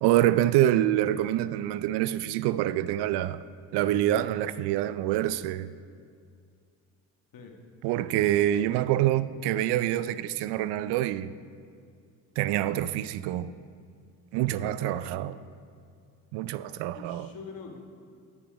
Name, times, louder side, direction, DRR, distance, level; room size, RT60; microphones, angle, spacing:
voice 1, 0.0-3.4 3.7-5.7 7.8-11.3 12.4-13.5 14.3-15.3 16.3-17.3, right 13 dB, 70° right, 0.5 m, -26 dB
voice 2, 14.5-15.1 16.9-17.8, left 5 dB, 55° left, 1.6 m, -44 dB
8.9 x 7.2 x 5.2 m
supercardioid pair, 65°, 42 cm